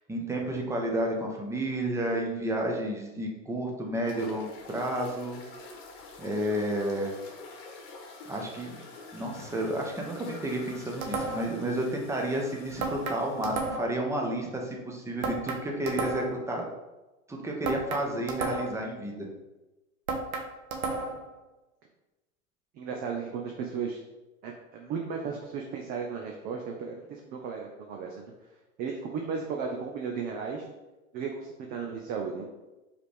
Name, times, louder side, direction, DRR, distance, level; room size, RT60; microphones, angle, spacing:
voice 1, 0.1-5.4 6.2-7.2 8.3-8.8 9.1-16.7 17.3-19.3, right 1 dB, 5° right, 0 dB, 0.8 m, -31 dB
sound 1, 4.0-13.7, left 3 dB, 50° left, 1.1 m, -47 dB
sound 2, 11.0-11.6 12.8-14.0 15.2-16.4 17.6-18.9 20.1-21.3, right 3 dB, 80° right, 0.9 m, -33 dB
voice 2, 22.8-24.0 24.4-28.3 28.8-30.6 31.1-32.5, right 5 dB, 25° right, 1 dB, 0.4 m, -35 dB
4.8 x 3.2 x 3.4 m, 1.1 s
hypercardioid pair, 105°, 41 cm